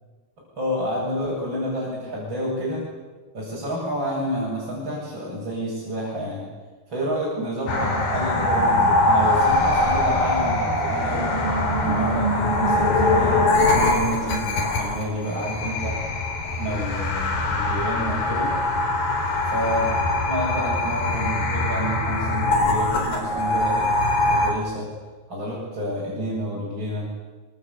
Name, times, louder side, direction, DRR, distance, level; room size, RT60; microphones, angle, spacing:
voice 1, 0.5-2.8 3.3-6.5 6.9-11.4 11.8-16.0 16.4-18.5 19.5-19.9 20.3-23.9 24.1-24.9 25.3-27.1, equal, 20° right, -5 dB, 8.3 m, -29 dB
sound 1, 7.7-24.5, left 2 dB, 50° left, 5.6 m, -22 dB
26.5 x 24.5 x 8.5 m, 1.4 s
omnidirectional pair, 5.9 m